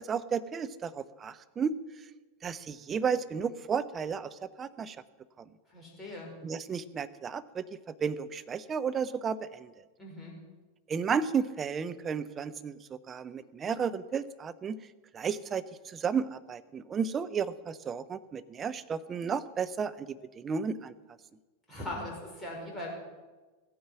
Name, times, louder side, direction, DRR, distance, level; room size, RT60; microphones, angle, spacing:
voice 1, 0.0-1.7 2.4-4.3 4.6-5.0 6.4-7.6 8.0-9.7 10.9-12.8 13.1-14.8 15.1-15.6 15.9-21.0, right 6 dB, 20° right, 12 dB, 0.6 m, -33 dB
voice 2, 5.7-6.3 10.0-10.3 21.7-22.9, left 1 dB, 10° left, -3 dB, 5.3 m, -40 dB
15.0 x 9.4 x 6.0 m, 1.3 s
figure-of-eight pair, 90°, 0 cm